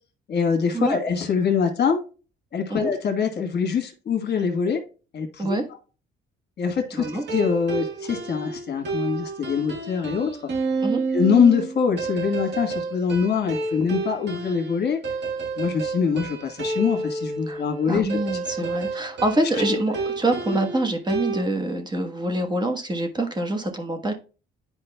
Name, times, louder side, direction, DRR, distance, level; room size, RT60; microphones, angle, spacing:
voice 1, 0.3-2.0 2.5-4.8 5.1-5.5 6.6-10.5 11.1-15.0 15.6-18.1 20.5-20.6, left 6 dB, 55° left, 5 dB, 1.4 m, -24 dB
voice 2, 6.9-7.2 10.8-11.0 17.5-24.1, right 1 dB, 20° right, 4 dB, 1.2 m, -25 dB
sound 1, 7.0-21.4, right 3 dB, 60° right, 1.6 m, -30 dB
10.5 x 4.8 x 2.2 m, 0.35 s
cardioid pair, 90°, 20 cm